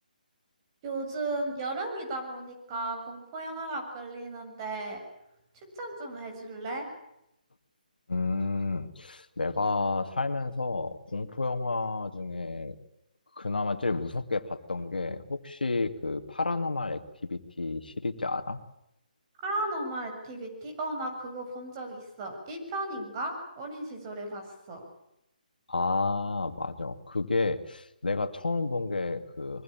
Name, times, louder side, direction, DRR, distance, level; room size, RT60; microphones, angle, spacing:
voice 1, 0.8-5.0 5.8-6.9 19.4-24.8, right 2 dB, 30° right, 3 dB, 7.3 m, -35 dB
voice 2, 8.1-12.8 13.4-18.6 25.7-29.6, left 3 dB, 80° left, 8 dB, 2.3 m, -31 dB
25.0 x 23.5 x 8.9 m, 0.82 s
figure-of-eight pair, 150°, 5 cm